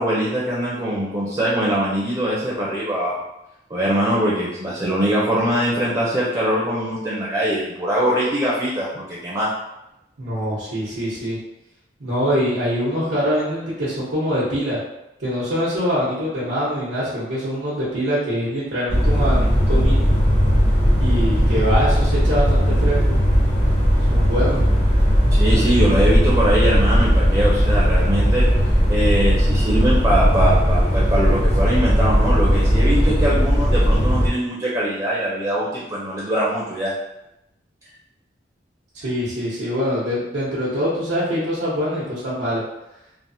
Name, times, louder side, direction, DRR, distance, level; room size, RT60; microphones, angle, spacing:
voice 1, 0.0-3.1 3.7-9.5 25.3-36.9, right 1 dB, 20° right, -7 dB, 0.5 m, -22 dB
voice 2, 10.2-11.4 12.0-14.8 15.2-20.1 21.0-23.1 24.1-24.6 39.0-42.6, equal, 90° right, -10 dB, 0.9 m, -24 dB
sound 1, 18.9-34.3, equal, 40° left, 0.7 m, -17 dB
3.3 x 2.0 x 2.7 m, 0.88 s
head